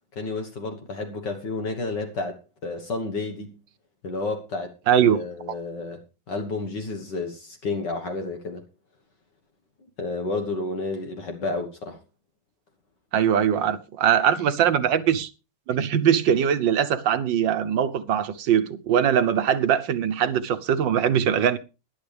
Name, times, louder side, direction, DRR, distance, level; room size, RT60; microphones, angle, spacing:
voice 1, 0.2-3.5 4.0-6.0 6.3-8.6 10.0-12.0, left 3 dB, 65° left, 2.1 m, -31 dB
voice 2, 4.9-5.2 13.1-15.3 15.7-21.6, right 9 dB, 70° right, 1.6 m, -21 dB
18.0 x 11.0 x 3.4 m
omnidirectional pair, 2.1 m